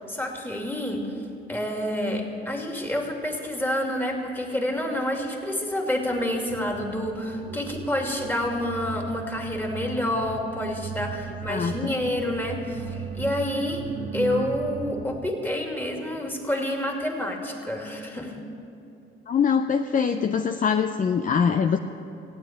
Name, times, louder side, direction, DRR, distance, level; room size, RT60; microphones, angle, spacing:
voice 1, 0.1-1.1 1.5-13.8 14.1-18.3, left 1 dB, 10° left, 0 dB, 2.6 m, -28 dB
sound 1, 6.5-15.3, right 6 dB, 90° right, 1.1 m, -37 dB
voice 2, 11.5-11.9 19.3-21.8, left 6 dB, 40° left, 7 dB, 0.6 m, -23 dB
15.5 x 9.3 x 8.7 m, 2.7 s
cardioid pair, 90°, 20 cm